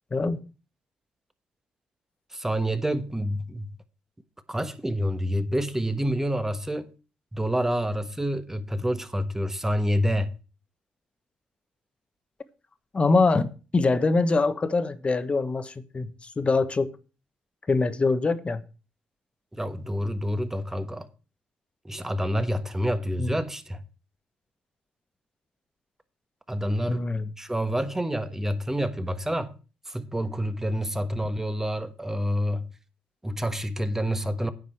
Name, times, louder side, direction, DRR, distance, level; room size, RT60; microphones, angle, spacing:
voice 1, 2.3-3.6 4.5-6.9 7.3-10.3 19.5-21.1 21.8-23.8 26.5-27.0 27.4-29.5 29.9-32.7 33.2-34.5, equal, 10° right, 1.3 m, -28 dB
voice 2, 12.9-16.9 17.7-18.6 23.2-23.4 26.9-27.3, left 3 dB, 35° left, 1.2 m, -24 dB
9.7 x 5.4 x 7.8 m
cardioid pair, 70°, 4 cm